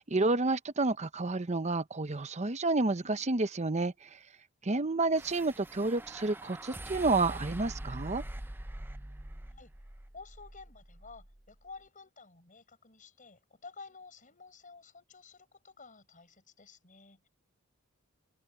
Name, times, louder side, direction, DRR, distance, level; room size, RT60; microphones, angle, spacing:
voice 1, 0.0-3.9 4.6-8.2, right 3 dB, 35° right, 0.9 m, -30 dB
sound 1, 5.1-11.5, right 1 dB, 10° right, 0.6 m, -44 dB
voice 2, 9.4-17.3, left 4 dB, 40° left, 7.1 m, -52 dB
head